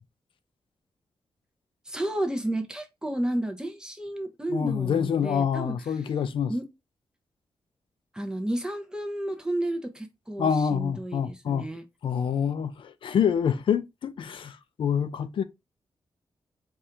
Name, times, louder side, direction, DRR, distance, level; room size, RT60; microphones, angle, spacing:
voice 1, 1.9-6.1 6.5-6.7 8.1-11.8, right 1 dB, 10° right, 0.7 m, -32 dB
voice 2, 4.5-6.5 10.4-11.7 12.0-15.4, left 7 dB, 65° left, 0.5 m, -26 dB
4.3 x 2.5 x 3.3 m
wide cardioid pair, 135°, 9 cm